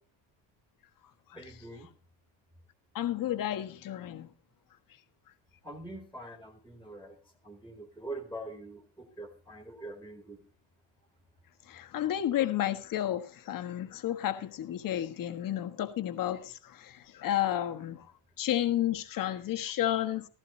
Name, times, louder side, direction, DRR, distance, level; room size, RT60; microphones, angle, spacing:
voice 1, 1.3-1.9 5.6-7.2 7.4-10.4, right 1 dB, ahead, 2.0 m, -44 dB
voice 2, 2.9-4.3 11.7-18.1 18.4-20.3, left 12 dB, 40° left, 1.3 m, -31 dB
15.5 x 14.0 x 2.7 m
cardioid pair, 165°, 49 cm